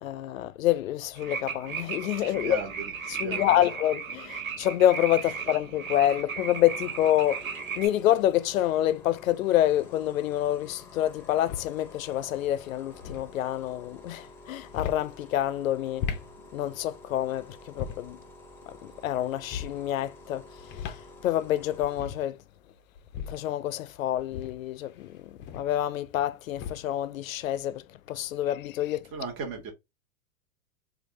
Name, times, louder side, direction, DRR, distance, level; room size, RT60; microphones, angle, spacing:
voice 1, 0.0-2.6 3.2-7.4 7.8-16.1 16.5-18.2 18.7-20.5 20.8-20.9 21.2-22.4 23.3-29.0, left 12 dB, 75° left, 0.5 m, -27 dB
sound 1, 1.2-7.9, right 6 dB, 80° right, 1.4 m, -36 dB
voice 2, 2.2-3.7 5.2-5.3 29.1-29.7, right 4 dB, 35° right, 1.3 m, -37 dB
sound 2, 6.2-22.0, left 2 dB, 5° left, 0.8 m, -51 dB
sound 3, 7.9-8.0 9.5-9.9 11.1-11.8 12.8-13.3 14.6-15.1 15.8-16.3 17.6-18.2 19.4-19.8 20.6-21.1 21.4-21.5 21.8-22.3 23.0-23.5 24.2-25.8 26.5-27.0, left 7 dB, 30° left, 0.5 m, -38 dB
3.3 x 2.5 x 2.9 m
hypercardioid pair, 105°, 41 cm